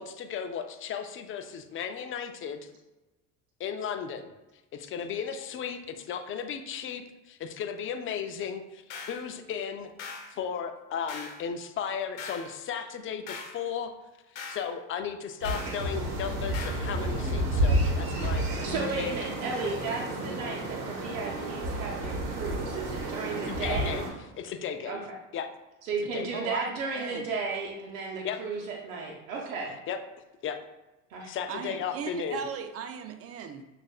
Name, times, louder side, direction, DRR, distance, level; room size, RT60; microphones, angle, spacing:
voice 1, 0.0-2.7 3.6-4.3 4.7-9.9 10.3-14.0 14.5-18.5 19.0-19.1 23.5-24.1 24.3-25.0 25.3-25.5 26.1-26.5 28.2-28.4 29.9-30.0 30.4-30.6 31.2-32.5, left 7 dB, 35° left, 7 dB, 0.4 m, -35 dB
sound 1, 8.9-9.2 10.0-10.3 11.1-11.4 12.2-12.5 13.3-13.6 14.4-14.7 15.4-15.8 16.5-16.9, left 4 dB, 85° left, 0.8 m, -40 dB
sound 2, 15.4-24.1, right 1 dB, 60° right, 1.1 m, -30 dB
voice 2, 18.6-23.9 24.9-25.0 25.8-29.7 31.1-31.3, right 4 dB, 90° right, -2 dB, 0.8 m, -34 dB
voice 3, 26.3-27.3 31.5-33.6, right 6 dB, 40° right, 8 dB, 0.4 m, -37 dB
6.2 x 2.5 x 2.3 m, 1.1 s
supercardioid pair, 90°, 40 cm